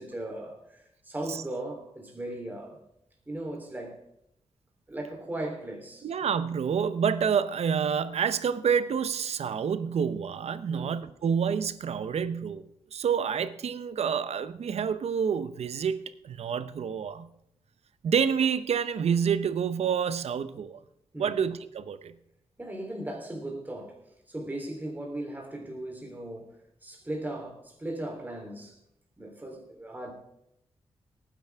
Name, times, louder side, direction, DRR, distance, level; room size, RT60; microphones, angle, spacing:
voice 1, 0.0-2.8 3.3-4.0 4.9-6.1 10.7-10.9 21.1-21.4 22.6-24.0 24.3-28.8 29.2-30.1, right 1 dB, 15° right, 3.5 m, -37 dB
voice 2, 6.0-16.0 16.2-17.3 18.0-20.8 21.2-22.1, right 7 dB, 80° right, 0.8 m, -28 dB
18.5 x 10.5 x 3.6 m
wide cardioid pair, 105°, 11 cm